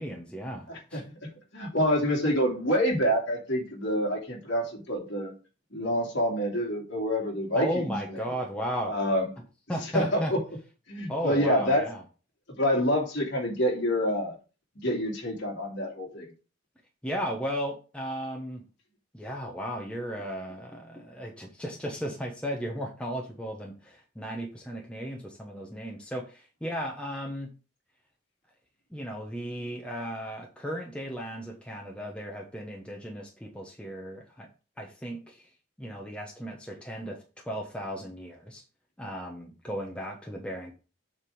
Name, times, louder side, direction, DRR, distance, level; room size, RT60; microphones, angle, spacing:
voice 1, 0.0-1.0 7.5-9.0 9.7-10.3 11.1-12.0 17.0-18.6 19.1-27.5 28.9-34.5 34.8-35.5 35.8-37.2 37.4-38.6 39.0-40.7, equal, 5° left, 0 dB, 1.0 m, -35 dB
voice 2, 0.7-5.3 5.7-8.2 8.9-9.3 9.9-10.4 10.9-11.9 12.6-14.4 14.8-16.3, equal, 55° left, -1 dB, 2.6 m, -27 dB
7.2 x 3.6 x 6.4 m, 0.34 s
head